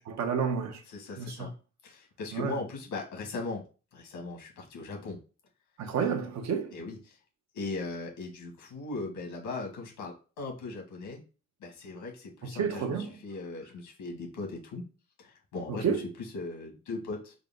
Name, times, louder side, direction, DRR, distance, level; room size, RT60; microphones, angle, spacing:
voice 1, 0.1-0.8 1.2-1.5 2.3-2.5 5.8-6.8 12.4-13.2 15.7-16.0, right 6 dB, 65° right, 0.8 m, -30 dB
voice 2, 0.9-1.5 1.8-3.6 3.9-5.2 6.7-7.2 7.5-11.2 11.6-14.8 15.2-17.3, left 3 dB, 85° left, 1.7 m, -39 dB
4.8 x 2.0 x 3.7 m
cardioid pair, 90°, 30 cm